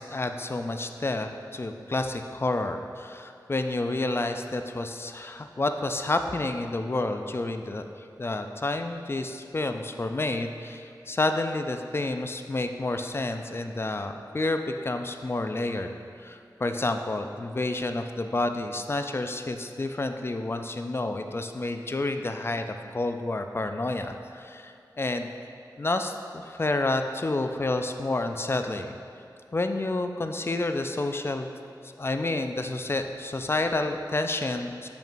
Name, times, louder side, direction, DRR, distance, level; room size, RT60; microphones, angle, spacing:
voice 1, 0.0-7.9 8.2-25.3 25.8-28.9 29.5-31.5 32.0-34.9, left 2 dB, 35° left, 6 dB, 0.3 m, -29 dB
7.4 x 5.1 x 2.6 m, 2.5 s
wide cardioid pair, 65°, 7 cm